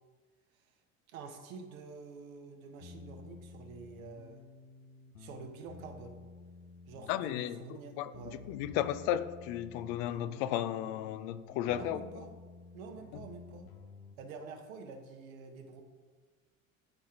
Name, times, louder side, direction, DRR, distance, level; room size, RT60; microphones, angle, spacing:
voice 1, 1.1-4.4 5.2-6.2 6.9-8.4 11.7-12.3 12.7-13.7 14.2-15.8, right 5 dB, 70° right, 5 dB, 1.2 m, -48 dB
sound 1, 2.8-14.2, left 4 dB, 90° left, 0.8 m, -51 dB
voice 2, 7.1-12.0, left 12 dB, 55° left, 14 dB, 0.5 m, -34 dB
12.0 x 4.3 x 3.8 m, 1.5 s
hypercardioid pair, 70°, 43 cm